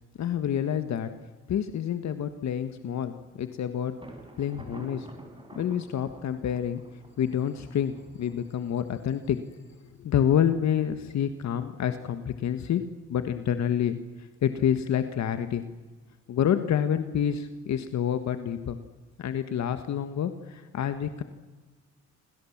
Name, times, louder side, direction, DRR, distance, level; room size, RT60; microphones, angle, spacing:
voice 1, 0.2-1.1 1.5-3.9 4.4-5.1 5.5-6.8 7.2-9.4 10.0-12.8 13.1-15.6 16.3-18.8 19.2-21.2, left 9 dB, 65° left, 9 dB, 1.6 m, -28 dB
Thunder, 4.0-9.7, right 1 dB, 15° right, 5.8 m, -49 dB
28.0 x 25.0 x 7.3 m, 1.3 s
cardioid pair, 90°, 30 cm